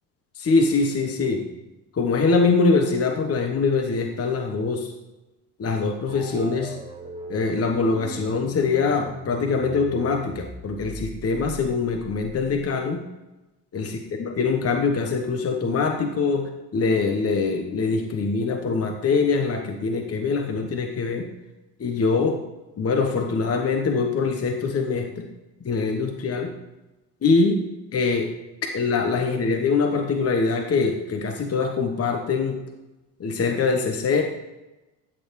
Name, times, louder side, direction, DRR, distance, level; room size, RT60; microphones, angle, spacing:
voice 1, 0.3-1.4 1.9-4.9 5.6-6.8 7.3-13.0 13.7-21.3 21.8-22.4 22.8-25.3 25.6-26.5 27.2-27.6 27.9-28.3 28.7-32.6 33.2-34.2, left 4 dB, 30° left, 4 dB, 1.0 m, -23 dB
sound 1, 6.1-12.7, right 3 dB, 10° right, 1.9 m, -40 dB
14.0 x 6.5 x 3.1 m, 1.0 s
supercardioid pair, 75°, 48 cm